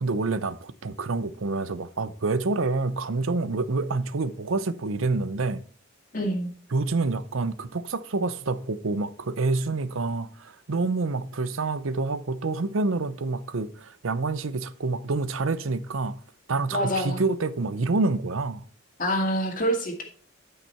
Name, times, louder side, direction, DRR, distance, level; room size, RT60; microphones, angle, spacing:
voice 1, 0.0-5.6 6.7-16.2 16.5-18.6, right 3 dB, 75° right, 0.7 m, -27 dB
voice 2, 6.1-6.5 16.7-17.2 19.0-20.0, equal, 40° left, 2.2 m, -26 dB
12.0 x 5.6 x 4.4 m
head